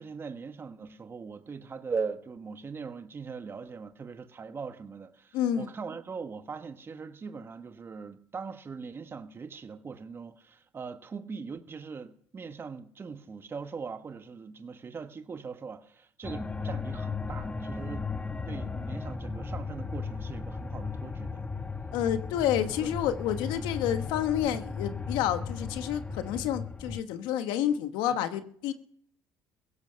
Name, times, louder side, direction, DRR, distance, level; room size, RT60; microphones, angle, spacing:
voice 1, 0.0-21.5 22.8-23.0 23.3-23.7 28.1-28.2, right 5 dB, 30° right, 1.3 m, -40 dB
voice 2, 5.3-5.7 21.9-28.7, left 10 dB, 80° left, 1.2 m, -29 dB
sound 1, 16.2-27.0, left 4 dB, 15° left, 1.2 m, -36 dB
16.5 x 15.0 x 5.7 m
supercardioid pair, 90°, 8 cm